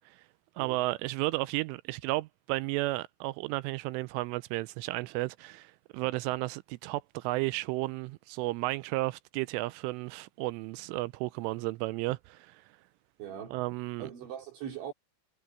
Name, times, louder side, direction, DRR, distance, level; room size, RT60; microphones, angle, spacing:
voice 1, 0.6-12.6 13.5-14.0, right 20 dB, 85° right, 3.0 m, -33 dB
voice 2, 13.2-13.6 14.0-14.9, right 9 dB, 65° right, 5.6 m, -40 dB
omnidirectional pair, 5.9 m